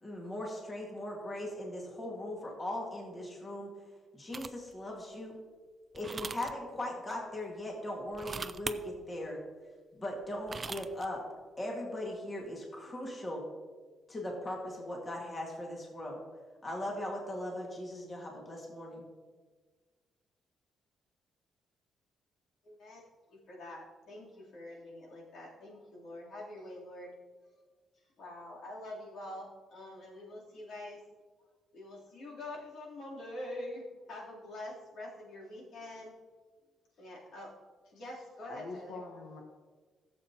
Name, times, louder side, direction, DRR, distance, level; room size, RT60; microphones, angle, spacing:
voice 1, 0.0-3.7 4.1-5.4 5.9-9.4 9.9-11.2 11.6-13.4 14.1-16.2 16.6-19.0, left 1 dB, 25° left, -1 dB, 1.9 m, -39 dB
sound 1, 4.3-4.7 5.9-6.5 8.1-8.8 10.2-11.1, right 4 dB, 25° right, 0.4 m, -40 dB
voice 2, 22.6-23.0 23.3-27.1 28.2-31.0 31.7-36.1 37.0-37.5 37.9-39.0, left 1 dB, 60° left, -5 dB, 3.2 m, -45 dB
voice 3, 38.5-39.4, left 3 dB, 85° left, 1 dB, 1.1 m, -45 dB
16.0 x 7.5 x 2.9 m, 1.4 s
cardioid pair, 150°, 0 cm